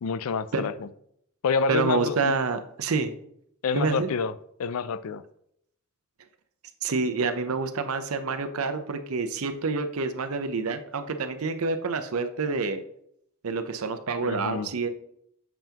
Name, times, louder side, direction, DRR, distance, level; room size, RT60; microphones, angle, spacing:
voice 1, 0.0-0.9 1.4-2.3 3.6-4.3 4.6-5.2 14.2-14.7, left 5 dB, 85° left, 15 dB, 0.4 m, -28 dB
voice 2, 1.7-3.1 3.7-4.1 6.8-12.8 13.4-14.9, right 4 dB, 85° right, 9 dB, 0.7 m, -28 dB
7.1 x 5.6 x 2.9 m, 0.71 s
head